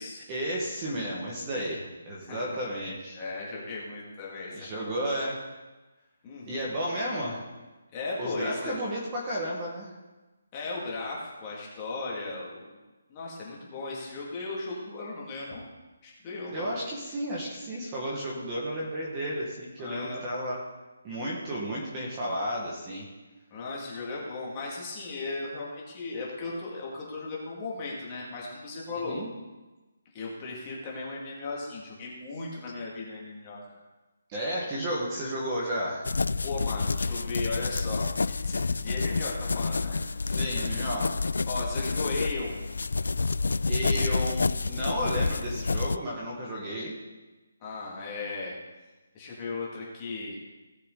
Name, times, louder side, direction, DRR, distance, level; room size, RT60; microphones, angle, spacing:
voice 1, 0.3-3.2 4.5-5.4 6.5-7.4 8.2-9.9 16.5-20.6 21.0-23.1 29.0-29.3 34.3-36.1 40.2-41.2 43.7-47.0, equal, 15° right, -4 dB, 1.5 m, -33 dB
voice 2, 3.1-4.9 6.2-6.6 7.9-8.7 10.5-12.8 13.1-15.6 16.0-16.7 19.8-20.2 23.5-29.2 30.1-33.8 36.4-40.0 41.5-42.5 47.6-48.6 49.1-50.4, left 3 dB, 15° left, -4 dB, 2.1 m, -36 dB
sound 1, 36.0-46.0, left 4 dB, 75° left, 0.3 m, -29 dB
17.0 x 6.9 x 3.9 m, 1.2 s
hypercardioid pair, 175°, 0 cm